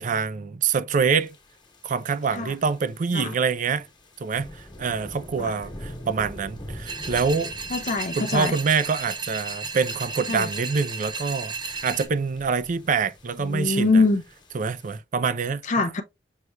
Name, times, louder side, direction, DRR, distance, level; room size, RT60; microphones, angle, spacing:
voice 1, 0.0-1.4 1.8-3.9 4.2-7.5 8.2-14.0 14.5-15.6, right 5 dB, 45° right, 0.4 m, -25 dB
sound 1, 1.2-15.0, equal, 25° left, 1.3 m, -45 dB
sound 2, 6.9-12.1, right 4 dB, 25° right, 1.0 m, -34 dB
voice 2, 7.7-8.5 10.3-10.5 13.4-14.2 15.6-16.0, left 3 dB, 45° left, 0.5 m, -23 dB
6.4 x 3.0 x 2.2 m
head